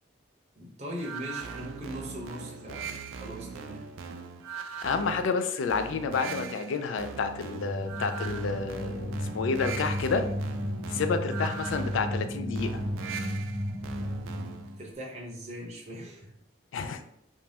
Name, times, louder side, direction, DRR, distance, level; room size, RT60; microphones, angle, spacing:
voice 1, 0.6-3.9 14.8-16.3, equal, 35° right, -2 dB, 0.6 m, -40 dB
sound 1, 1.0-14.8, right 6 dB, 90° right, 0.3 m, -40 dB
voice 2, 4.8-10.2 10.9-12.8 16.7-17.0, left 5 dB, 80° left, 8 dB, 0.3 m, -30 dB
sound 2, 7.5-14.8, equal, 65° left, 1.3 m, -34 dB
2.6 x 2.2 x 3.2 m, 0.72 s
head